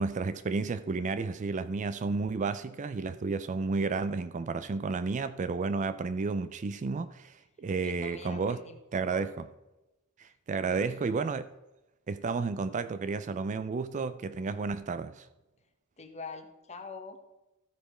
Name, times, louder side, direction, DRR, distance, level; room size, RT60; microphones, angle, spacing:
voice 1, 0.0-8.6 8.9-9.5 10.2-11.5 12.1-15.3, right 4 dB, 35° right, 0.4 m, -32 dB
voice 2, 7.8-9.3 10.7-11.3 16.0-17.2, left 3 dB, 30° left, 1.1 m, -45 dB
13.5 x 5.0 x 5.0 m
head